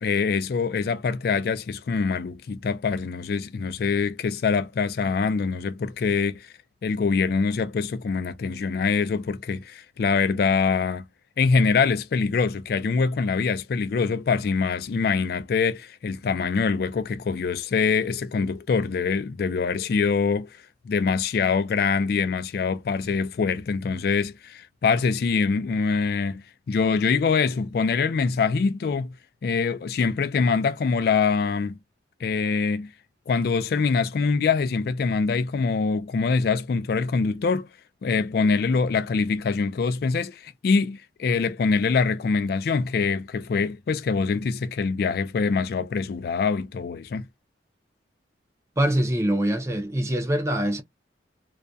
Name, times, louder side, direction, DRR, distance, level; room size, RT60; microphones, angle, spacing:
voice 1, 0.0-6.5 6.8-11.1 11.4-20.5 20.8-29.1 29.4-31.8 32.2-32.9 33.3-37.7 38.0-47.2, left 5 dB, 55° left, 0.3 m, -24 dB
voice 2, 48.8-50.8, right 1 dB, 15° right, 0.5 m, -24 dB
2.3 x 2.1 x 2.5 m
head